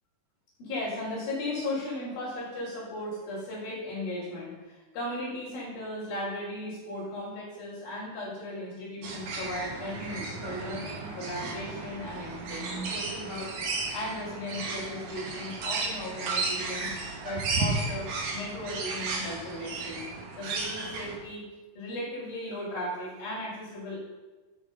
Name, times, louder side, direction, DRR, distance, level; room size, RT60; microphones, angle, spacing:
voice 1, 0.6-13.6 13.9-16.9 17.2-20.1 20.4-21.4 21.8-24.0, left 1 dB, 90° left, -8 dB, 7.1 m, -36 dB
sound 1, 9.0-21.2, right 3 dB, 60° right, 3.2 m, -34 dB
13.0 x 9.2 x 5.8 m, 1.2 s
omnidirectional pair, 4.1 m